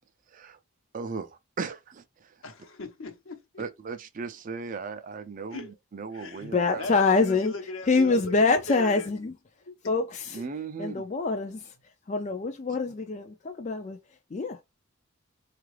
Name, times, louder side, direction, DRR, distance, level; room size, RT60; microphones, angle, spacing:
voice 1, 0.9-2.3 3.6-5.7 5.9-6.9 10.3-11.0, right 4 dB, 40° right, 0.4 m, -37 dB
voice 2, 2.4-3.6 5.5-5.7 6.1-9.1 9.7-9.8, left 2 dB, 75° left, 0.9 m, -39 dB
voice 3, 6.4-7.5 7.9-9.3 9.9-10.4 10.8-11.6 12.1-14.0 14.3-14.6, left 3 dB, 35° left, 0.3 m, -25 dB
4.6 x 2.4 x 3.2 m
head